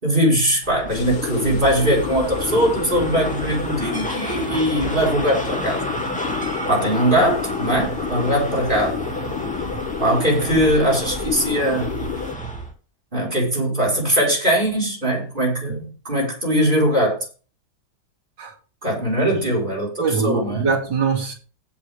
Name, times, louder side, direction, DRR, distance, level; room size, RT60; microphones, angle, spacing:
voice 1, 0.0-5.9 6.7-9.0 10.0-11.9 13.1-17.2 18.8-20.7, equal, 20° right, 5.2 m, -21 dB
sound 1, 0.6-12.7, right 1 dB, 5° left, 2.3 m, -31 dB
sound 2, 0.9-12.3, left 8 dB, 85° left, 1.9 m, -30 dB
voice 2, 20.0-21.3, right 5 dB, 55° right, 3.4 m, -23 dB
16.5 x 7.3 x 3.6 m
omnidirectional pair, 2.3 m